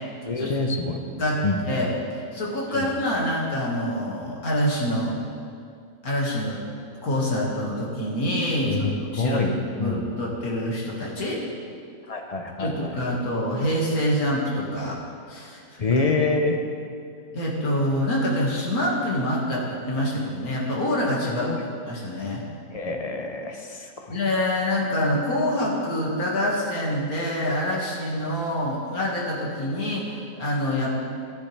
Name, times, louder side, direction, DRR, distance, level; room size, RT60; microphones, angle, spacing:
voice 1, 0.3-1.0 1.4-1.6 2.7-2.9 8.6-8.9 9.2-10.0 12.1-12.9 15.8-16.6 21.2-21.6 22.7-24.2, left 3 dB, 35° left, 3 dB, 0.6 m, -26 dB
voice 2, 1.2-5.2 6.0-6.6 7.0-9.4 9.8-11.4 12.6-15.0 15.3-15.6 17.3-21.5 21.9-22.4 24.1-31.0, equal, 75° left, -4 dB, 2.4 m, -26 dB
13.0 x 10.0 x 3.4 m, 2.4 s
omnidirectional pair, 1.6 m